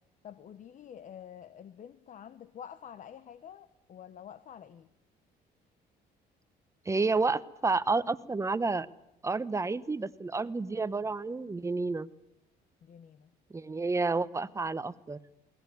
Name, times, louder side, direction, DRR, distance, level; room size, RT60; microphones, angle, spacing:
voice 1, 0.2-4.9 12.8-13.3 14.1-14.4, left 9 dB, 50° left, 14 dB, 1.1 m, -48 dB
voice 2, 6.9-8.9 9.2-12.1 13.5-15.2, right 3 dB, 15° right, 15 dB, 0.9 m, -30 dB
21.5 x 18.5 x 9.3 m, 0.84 s
cardioid pair, 110°, 17 cm